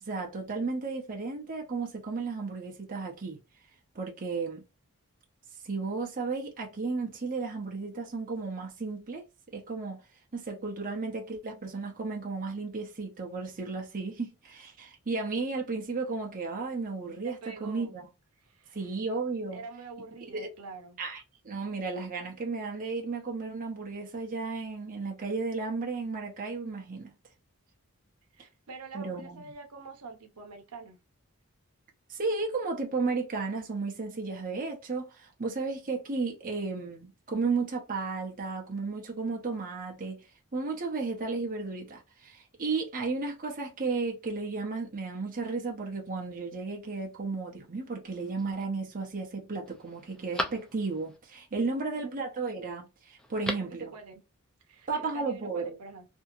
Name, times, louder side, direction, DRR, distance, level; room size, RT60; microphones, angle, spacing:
voice 1, 0.0-3.4 3.9-4.6 5.6-9.2 9.5-10.0 10.3-18.0 18.7-19.6 20.3-20.5 21.0-27.1 28.9-29.5 32.1-40.2 40.5-53.9 54.9-55.7, right 4 dB, 40° right, 0.7 m, -34 dB
voice 2, 17.2-18.0 18.4-18.9 19.5-21.0 28.3-31.0 51.7-52.2 53.5-54.2 54.7-56.1, right 4 dB, 90° right, 0.7 m, -46 dB
Telephone, 48.1-48.6 49.2-49.3 49.7-51.2 53.2-53.8 54.1-54.2, equal, 5° left, 0.4 m, -38 dB
2.7 x 2.7 x 2.4 m
head